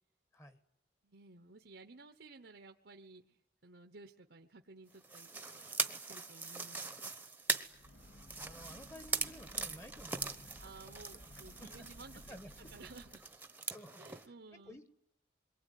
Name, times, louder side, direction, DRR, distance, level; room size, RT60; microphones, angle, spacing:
voice 1, 1.0-5.7 6.1-7.1 10.6-13.2 13.9-14.8, right 3 dB, 70° right, 6 dB, 1.1 m, -55 dB
sound 1, 5.0-14.3, right 4 dB, 10° right, 1.1 m, -41 dB
Breathing / Train, 7.6-13.3, left 1 dB, 85° left, 6.6 m, -57 dB
voice 2, 8.3-10.6 11.6-11.9 12.3-12.5 13.7-14.0 14.7-14.9, equal, 15° left, 10 dB, 1.4 m, -53 dB
28.0 x 22.5 x 9.4 m, 0.78 s
head